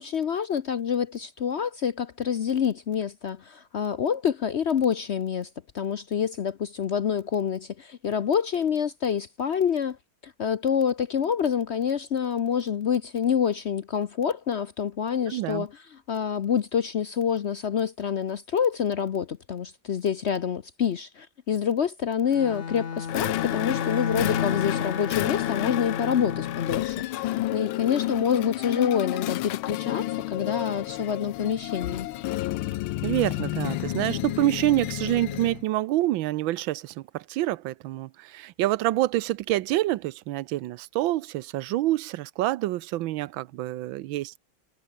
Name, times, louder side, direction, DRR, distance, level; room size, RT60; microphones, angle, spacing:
voice 1, 0.0-5.5 5.7-10.0 10.2-32.1, left 8 dB, 70° left, 0.6 m, -27 dB
voice 2, 15.2-15.7 33.0-44.4, right 16 dB, 85° right, 1.4 m, -27 dB
Bowed string instrument, 22.3-26.8, left 6 dB, 40° left, 1.4 m, -32 dB
sound 1, 23.1-35.6, left 16 dB, 90° left, 1.5 m, -31 dB
omnidirectional pair, 2.1 m